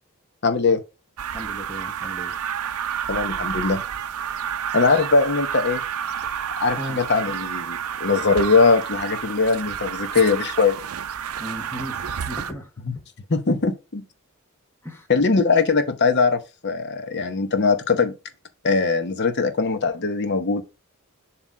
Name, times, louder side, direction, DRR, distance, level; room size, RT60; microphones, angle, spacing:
voice 1, 0.4-0.8 3.1-3.8 4.7-5.8 6.6-10.8 12.9-13.0 13.3-14.0 15.1-18.1 18.6-20.6, left 4 dB, 50° left, 0.9 m, -21 dB
sound 1, 1.2-12.5, right 8 dB, 80° right, 0.5 m, -30 dB
voice 2, 1.3-2.4 6.8-7.0 11.4-12.7 14.8-15.1, equal, 10° left, 1.2 m, -35 dB
7.4 x 3.0 x 5.0 m
head